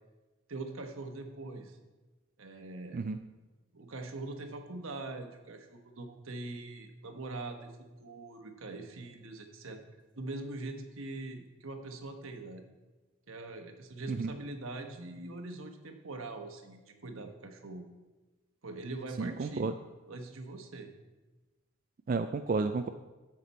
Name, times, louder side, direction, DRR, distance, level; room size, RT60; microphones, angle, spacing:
voice 1, 0.5-1.8 2.4-3.0 3.7-9.8 10.1-12.6 13.3-17.8 18.6-19.7 20.1-20.9, right 2 dB, 80° right, 5 dB, 1.1 m, -42 dB
voice 2, 19.2-19.7 22.1-22.9, right 4 dB, 40° right, 8 dB, 0.3 m, -31 dB
13.5 x 5.9 x 4.2 m, 1.2 s
head